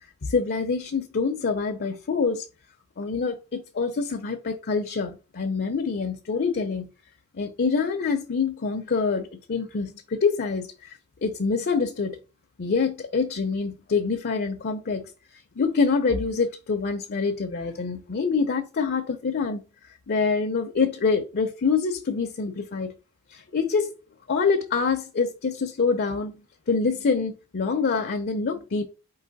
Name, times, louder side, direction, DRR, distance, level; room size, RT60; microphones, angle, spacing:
voice 1, 0.2-2.5 3.0-6.9 7.3-12.2 12.6-19.6 20.1-22.9 23.3-23.9 24.3-26.4 26.7-28.8, left 4 dB, 45° left, 0.6 m, -26 dB
4.6 x 2.9 x 4.0 m
head